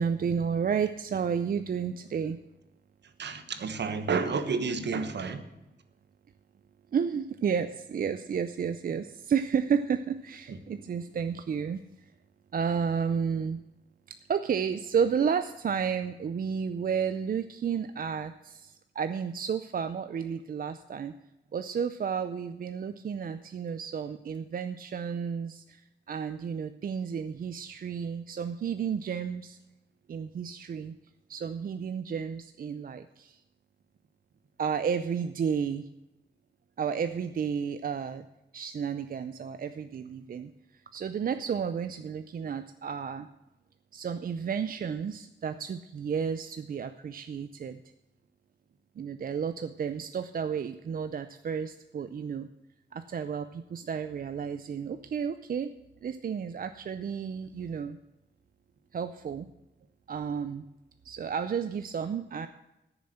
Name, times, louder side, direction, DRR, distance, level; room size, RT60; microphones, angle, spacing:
voice 1, 0.0-2.4 6.9-12.1 12.5-13.6 14.3-21.1 21.5-29.6 30.1-30.9 31.3-33.4 34.6-35.9 36.8-38.3 38.5-43.3 43.9-47.8 49.0-52.5 52.9-55.7 56.0-58.0 58.9-59.5 60.1-60.7 61.0-62.5, right 7 dB, 50° right, 10 dB, 0.5 m, -32 dB
voice 2, 3.2-5.4, right 5 dB, 70° right, 9 dB, 1.2 m, -30 dB
14.0 x 7.0 x 7.8 m, 0.95 s
wide cardioid pair, 175°, 18 cm